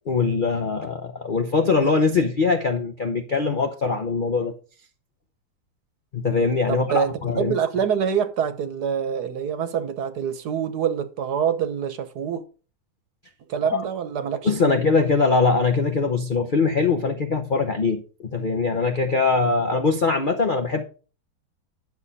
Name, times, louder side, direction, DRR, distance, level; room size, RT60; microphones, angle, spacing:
voice 1, 0.1-4.5 6.1-7.5 13.7-13.8 14.4-18.0 18.3-20.8, left 4 dB, 70° left, 0.4 m, -22 dB
voice 2, 6.7-12.4 13.5-14.7, right 7 dB, 60° right, 1.3 m, -26 dB
10.5 x 6.4 x 4.1 m
omnidirectional pair, 2.2 m